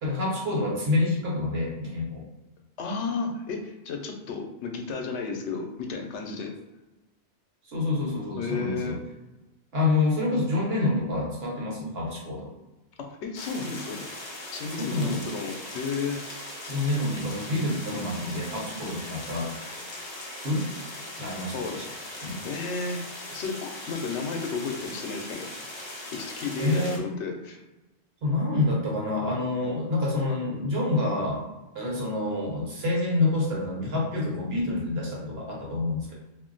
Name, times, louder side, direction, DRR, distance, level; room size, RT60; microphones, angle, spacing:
voice 1, 0.0-2.2 7.7-9.0 9.7-12.5 14.8-15.2 16.7-19.6 20.4-20.7 21.2-21.6 22.2-22.4 26.6-27.0 28.2-31.4 31.7-36.1, left 2 dB, 65° right, -3 dB, 1.2 m, -27 dB
voice 2, 2.8-6.5 8.4-9.0 13.1-14.0 14.5-16.3 17.9-18.0 21.5-21.8 22.4-23.0 23.3-25.7 26.1-27.6 29.1-29.3, left 4 dB, 90° left, 3 dB, 0.9 m, -33 dB
sound 1, 13.3-27.0, left 1 dB, 40° left, 0.4 m, -39 dB
2.5 x 2.1 x 3.8 m, 1.0 s
omnidirectional pair, 1.1 m